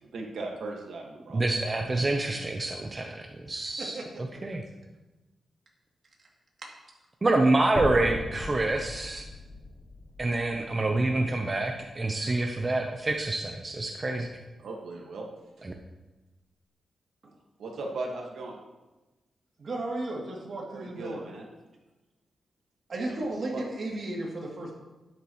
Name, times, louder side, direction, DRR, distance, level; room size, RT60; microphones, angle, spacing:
voice 1, 0.0-1.4 14.6-15.3 17.6-18.5 20.7-21.5 23.0-23.2 23.5-23.6, right 3 dB, 80° right, 0 dB, 1.7 m, -37 dB
voice 2, 1.3-4.0 4.4-4.6 7.2-9.2 10.2-14.3 15.6-15.7, right 2 dB, 25° right, 2 dB, 0.8 m, -27 dB
sound 1, 7.8-11.9, left 2 dB, 30° left, 0.9 m, -38 dB
voice 3, 19.6-21.3 22.9-24.7, right 2 dB, 45° right, -3 dB, 2.8 m, -34 dB
12.0 x 10.5 x 3.1 m, 1.1 s
wide cardioid pair, 125°, 0 cm